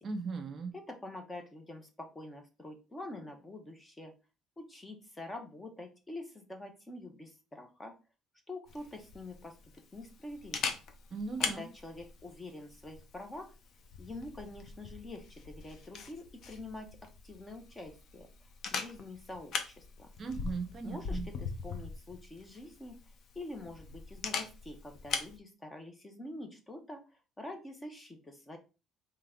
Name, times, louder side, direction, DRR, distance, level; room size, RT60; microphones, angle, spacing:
voice 1, 0.0-0.7 11.1-11.7 20.2-21.3, right 4 dB, 40° right, 7 dB, 0.6 m, -38 dB
voice 2, 0.7-4.1 4.6-8.0 8.5-9.6 9.9-10.7 11.4-13.5 14.0-17.0 17.2-18.3 18.7-20.1 20.8-23.0 23.3-28.6, left 2 dB, 15° left, 5 dB, 0.8 m, -46 dB
Camera, 8.7-25.4, left 5 dB, 55° left, 0.7 m, -42 dB
3.7 x 3.3 x 3.6 m, 0.32 s
cardioid pair, 135°, 0 cm